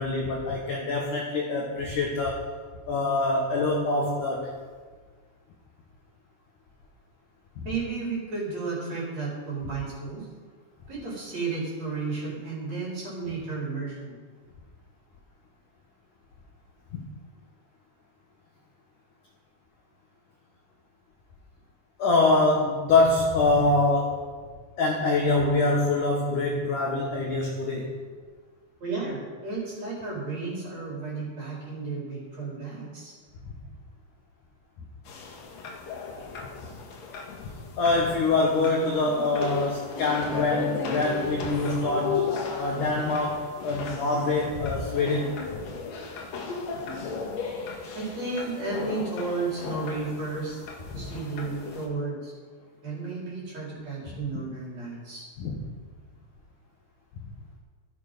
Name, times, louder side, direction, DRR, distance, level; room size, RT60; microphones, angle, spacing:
voice 1, 0.0-2.5 2.9-4.5 7.6-7.7 16.9-17.0 22.0-24.3 24.8-28.0 37.8-42.2 42.6-45.4 50.9-51.0 55.4-55.6, left 2 dB, 70° left, -1 dB, 2.0 m, -25 dB
voice 2, 7.6-10.3 10.9-14.2 28.8-33.1 47.9-50.6 50.9-52.3 52.8-55.3, right 4 dB, 35° right, -5 dB, 4.9 m, -33 dB
sound 1, 35.1-51.9, left 5 dB, 85° left, 1.5 m, -35 dB
13.5 x 11.5 x 5.4 m, 1.5 s
omnidirectional pair, 5.8 m